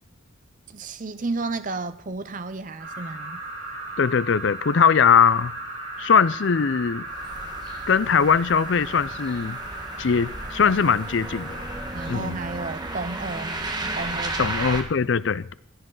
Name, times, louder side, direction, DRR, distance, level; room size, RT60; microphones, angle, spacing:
voice 1, 0.7-3.4 11.9-14.5, right 3 dB, 40° right, 0.7 m, -32 dB
sound 1, 2.8-12.1, right 2 dB, 70° right, 5.9 m, -36 dB
voice 2, 4.0-5.6 6.0-7.1 7.9-9.6 10.0-11.6 12.1-12.4 14.4-15.5, left 6 dB, 60° left, 0.5 m, -21 dB
sound 2, 7.1-14.8, right 2 dB, 20° right, 1.4 m, -34 dB
17.0 x 10.0 x 3.9 m
head